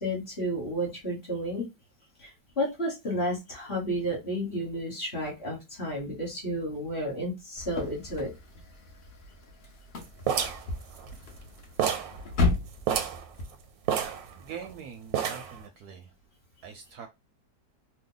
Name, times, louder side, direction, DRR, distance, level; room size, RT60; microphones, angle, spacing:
voice 1, 0.0-1.7 2.2-8.3, equal, 35° left, -3 dB, 1.2 m, -32 dB
sound 1, 7.6-13.4, left 3 dB, 55° left, 0.7 m, -34 dB
sound 2, 10.3-11.5 11.8-12.2 12.5-12.6 12.8-13.2 13.9-14.7 15.1-15.6, right 9 dB, 90° right, 1.3 m, -29 dB
voice 2, 14.3-16.1 16.6-17.1, right 7 dB, 70° right, 4 dB, 0.9 m, -43 dB
3.0 x 2.2 x 3.7 m, 0.23 s
omnidirectional pair, 2.0 m